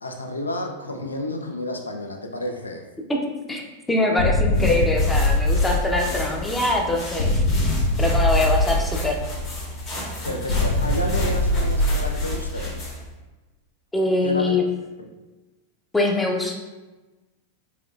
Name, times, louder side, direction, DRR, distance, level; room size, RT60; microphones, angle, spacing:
voice 1, 0.0-2.8 10.2-12.8 14.2-14.6 15.0-15.1, left 1 dB, 80° left, 3 dB, 0.5 m, -30 dB
voice 2, 3.9-9.2 13.9-14.6 15.9-16.6, left 2 dB, 10° left, 1 dB, 0.6 m, -23 dB
sound 1, 4.2-6.5 7.2-9.5 10.5-12.8, left 1 dB, 60° left, 0.8 m, -22 dB
sound 2, 4.5-13.1, left 1 dB, 35° left, 1.3 m, -33 dB
5.0 x 3.0 x 2.3 m, 1.2 s
figure-of-eight pair, 90°, 0 cm